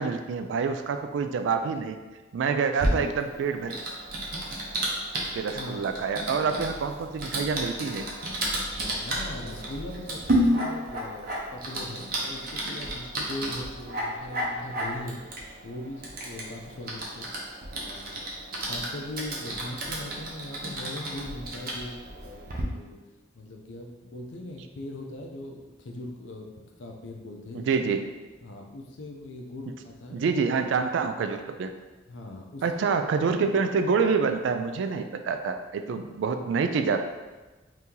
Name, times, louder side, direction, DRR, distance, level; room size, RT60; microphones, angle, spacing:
voice 1, 0.0-2.0 2.3-3.8 5.3-8.1 27.5-28.0 30.1-31.7 32.6-37.1, right 5 dB, 70° right, 7 dB, 0.3 m, -27 dB
Typing, 2.8-22.6, right 1 dB, 50° right, 0.7 m, -32 dB
voice 2, 5.6-5.9 9.0-15.2 15.6-17.3 17.8-18.3 18.6-23.0 23.3-26.5 26.8-27.9 28.4-30.4 32.1-33.0, left 1 dB, 75° left, 2 dB, 0.5 m, -40 dB
2.9 x 2.7 x 3.6 m, 1.2 s
head